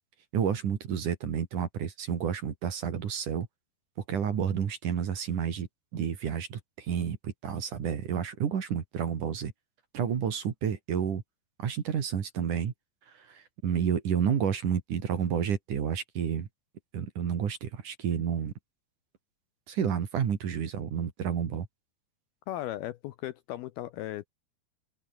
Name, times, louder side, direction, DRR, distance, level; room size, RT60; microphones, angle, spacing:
voice 1, 0.3-3.5 4.1-5.7 5.9-9.5 9.9-11.2 11.6-12.7 13.2-16.5 16.9-18.5 19.7-21.7, right 8 dB, 50° right, 3.5 m, -30 dB
voice 2, 22.5-24.3, left 14 dB, 75° left, 2.4 m, -36 dB
open air
omnidirectional pair, 5.1 m